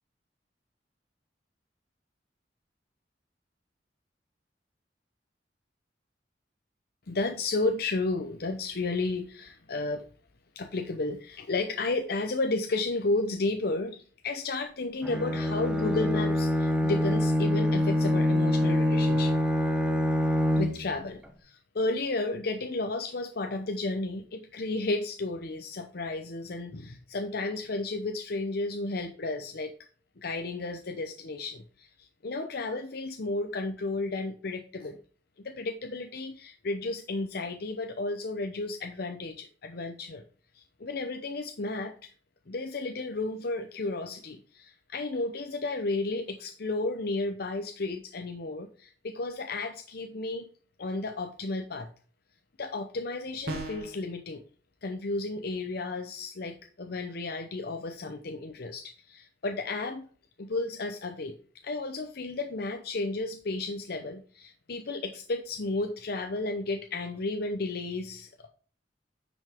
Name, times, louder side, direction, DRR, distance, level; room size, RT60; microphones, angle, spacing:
voice 1, 7.1-10.0 10.6-19.4 20.5-29.7 30.2-35.0 35.4-40.2 40.5-42.1 42.5-50.5 50.8-51.9 52.6-54.4 54.8-60.1 60.4-61.4 61.6-68.5, left 2 dB, 60° left, 5 dB, 0.7 m, -33 dB
Bowed string instrument, 15.0-21.0, left 1 dB, 5° right, 1.0 m, -25 dB
sound 1, 53.5-54.0, right 1 dB, 60° right, 2.0 m, -35 dB
9.4 x 5.2 x 3.5 m, 0.42 s
head